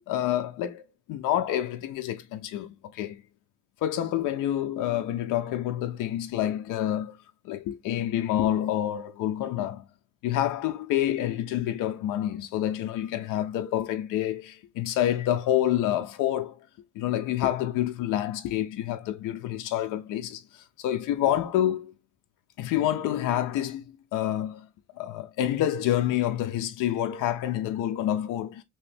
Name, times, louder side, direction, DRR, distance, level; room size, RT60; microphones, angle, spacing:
voice 1, 0.1-0.8 1.1-3.2 3.8-7.2 7.4-9.8 10.2-16.6 17.0-21.9 22.6-24.7 25.0-28.6, left 12 dB, 75° left, 0.6 m, -28 dB
3.0 x 2.9 x 3.3 m
cardioid pair, 160°, 31 cm